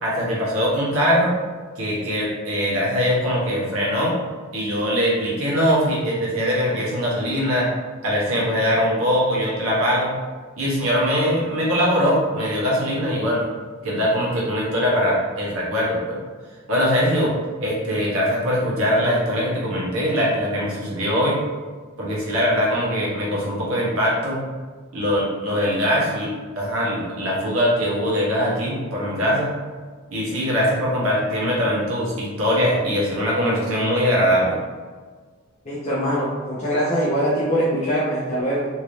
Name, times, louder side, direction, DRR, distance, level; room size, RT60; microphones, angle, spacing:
voice 1, 0.0-1.3 1.8-4.2 4.5-7.7 8.0-10.1 10.6-13.4 13.8-16.2 16.7-17.3 17.6-21.4 22.0-24.4 24.9-29.5 30.1-34.6, equal, 75° right, -5 dB, 1.0 m, -22 dB
voice 2, 35.6-38.7, equal, 30° left, -8 dB, 0.6 m, -22 dB
2.9 x 2.6 x 3.1 m, 1.5 s
head